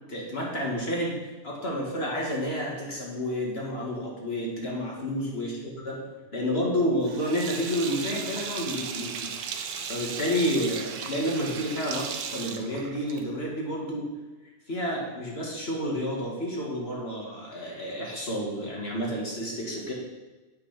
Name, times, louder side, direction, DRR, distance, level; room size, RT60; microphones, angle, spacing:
voice 1, 0.1-1.2 1.4-6.1 6.3-14.1 14.7-19.9, equal, 45° left, -3 dB, 2.0 m, -30 dB
Sink (filling or washing), 7.0-13.4, right 7 dB, 90° right, 1.2 m, -36 dB
8.1 x 6.0 x 5.9 m, 1.2 s
omnidirectional pair, 1.5 m